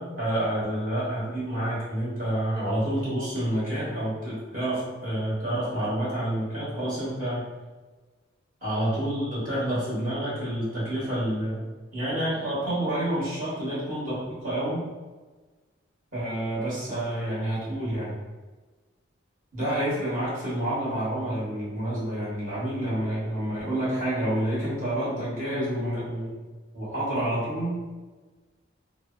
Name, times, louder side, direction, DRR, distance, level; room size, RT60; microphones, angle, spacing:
voice 1, 0.0-7.5 8.6-11.6 11.9-14.8 16.1-18.2 19.5-26.3 26.7-27.8, right 1 dB, 45° right, -9 dB, 1.2 m, -28 dB
2.7 x 2.0 x 2.5 m, 1.3 s
head